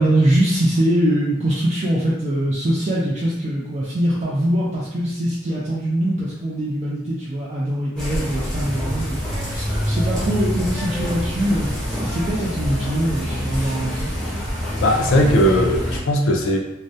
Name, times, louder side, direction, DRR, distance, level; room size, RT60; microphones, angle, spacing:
voice 1, 0.0-14.1, right 1 dB, 35° right, -7 dB, 0.3 m, -22 dB
sound 1, 8.0-16.0, equal, 5° left, 0.6 m, -26 dB
voice 2, 14.8-16.6, equal, 75° left, 2 dB, 0.4 m, -18 dB
2.3 x 2.0 x 2.6 m, 0.91 s
head